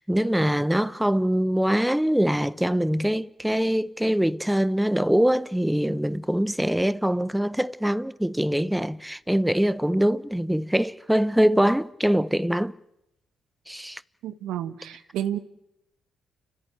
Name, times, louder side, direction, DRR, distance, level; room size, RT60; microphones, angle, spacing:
voice 1, 0.0-12.7 13.7-14.0, equal, 5° right, 0.8 m, -23 dB
voice 2, 14.2-15.4, right 11 dB, 75° right, 1.5 m, -30 dB
30.0 x 14.5 x 9.4 m
supercardioid pair, 60°, 0 cm